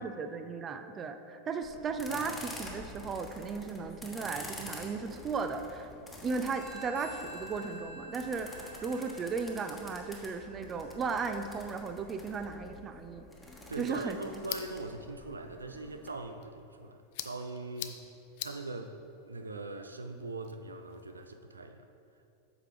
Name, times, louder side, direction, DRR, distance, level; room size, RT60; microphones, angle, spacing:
voice 1, 0.0-5.9 6.2-13.3 13.8-14.2, right 4 dB, 30° right, 8 dB, 0.5 m, -36 dB
sound 1, 1.6-16.1, left 1 dB, 10° left, 1.3 m, -48 dB
Telephone, 6.5-11.9, right 2 dB, 75° left, 1.4 m, -49 dB
sound 2, 13.5-21.4, left 12 dB, 60° left, 0.4 m, -47 dB
voice 2, 13.7-18.0 18.4-21.8, right 2 dB, 90° right, 7 dB, 0.4 m, -41 dB
8.0 x 5.9 x 3.5 m, 2.7 s
hypercardioid pair, 90°, 0 cm